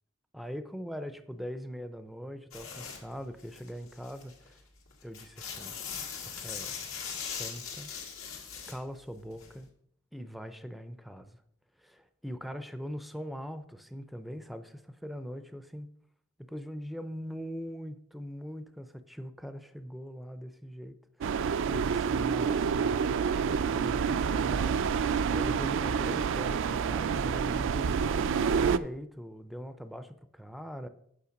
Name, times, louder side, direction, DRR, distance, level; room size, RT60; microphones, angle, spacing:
voice 1, 0.3-4.6 5.0-5.8 6.2-6.8 7.2-7.9 8.7-9.7 10.1-11.4 11.8-15.9 16.4-21.0 21.2-28.3 28.6-30.9, equal, ahead, 11 dB, 0.5 m, -42 dB
sound 1, 2.5-3.0 3.4-4.5 4.9-8.8 9.3-9.5, left 6 dB, 75° left, 2.1 m, -40 dB
sound 2, 21.2-28.8, right 6 dB, 65° right, 0.4 m, -28 dB
8.5 x 6.5 x 5.2 m, 0.70 s
head